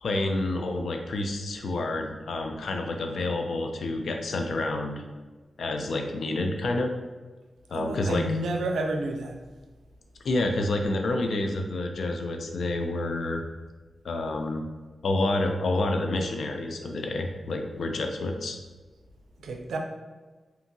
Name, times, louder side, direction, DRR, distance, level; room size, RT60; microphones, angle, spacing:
voice 1, 0.0-5.0 5.6-6.9 7.7-8.2 10.2-13.4 14.0-14.7 15.0-18.6, left 2 dB, 75° left, 3 dB, 0.4 m, -28 dB
voice 2, 7.7-9.4 19.4-19.8, right 2 dB, 90° right, 3 dB, 0.4 m, -30 dB
2.7 x 2.6 x 2.6 m, 1.3 s
cardioid pair, 55°, 0 cm